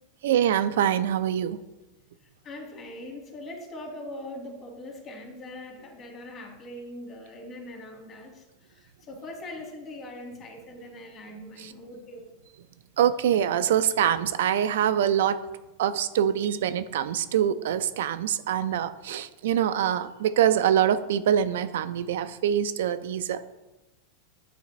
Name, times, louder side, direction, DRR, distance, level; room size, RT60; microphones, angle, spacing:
voice 1, 0.2-1.6 11.6-11.7 13.0-15.4 15.8-23.4, right 10 dB, 80° right, 11 dB, 0.3 m, -24 dB
voice 2, 2.4-8.4 8.7-12.2, left 1 dB, 35° left, 1 dB, 1.7 m, -41 dB
9.5 x 3.3 x 3.0 m, 1.0 s
hypercardioid pair, 120°, 0 cm